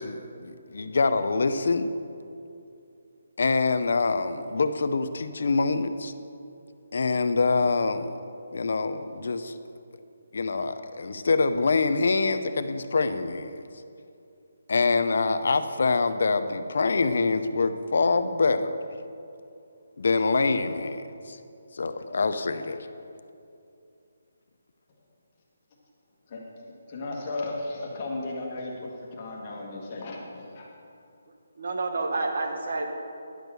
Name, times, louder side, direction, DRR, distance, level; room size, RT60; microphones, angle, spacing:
voice 1, 0.0-1.9 3.4-6.1 6.9-8.1 8.5-9.5 10.3-13.6 14.7-18.8 20.0-21.4 21.7-22.8, left 3 dB, 55° left, 10 dB, 0.6 m, -25 dB
voice 2, 26.3-30.7, left 2 dB, 20° left, -3 dB, 1.4 m, -35 dB
voice 3, 31.6-32.8, right 3 dB, 55° right, 4 dB, 1.2 m, -29 dB
10.5 x 6.3 x 6.8 m, 2.6 s
hypercardioid pair, 175°, 0 cm